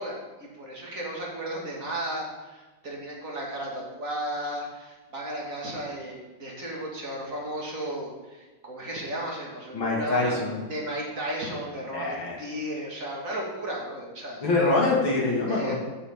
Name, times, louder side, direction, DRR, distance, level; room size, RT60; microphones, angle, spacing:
voice 1, 0.0-10.4 10.7-14.4 15.5-15.8, right 1 dB, 40° right, -2 dB, 2.5 m, -34 dB
voice 2, 9.7-10.6 11.9-12.4 14.4-15.8, left 3 dB, 70° left, -3 dB, 3.0 m, -25 dB
14.0 x 7.2 x 3.7 m, 1.2 s
omnidirectional pair, 2.3 m